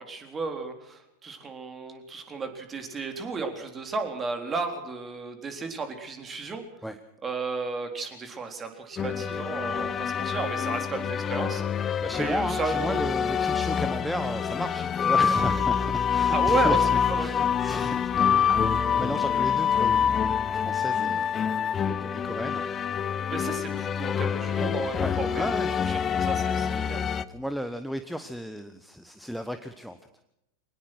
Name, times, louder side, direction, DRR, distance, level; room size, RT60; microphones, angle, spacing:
voice 1, 0.0-6.6 7.2-13.0 16.3-17.5 23.3-25.5 25.9-27.1, right 4 dB, 20° right, 6 dB, 3.8 m, -33 dB
sound 1, 9.0-27.2, left 7 dB, 25° left, 0.8 m, -26 dB
voice 2, 12.0-21.3 21.8-23.1 25.0-26.1 27.3-30.0, equal, ahead, 10 dB, 1.1 m, -35 dB
24.0 x 19.5 x 6.2 m, 0.81 s
figure-of-eight pair, 90°, 0 cm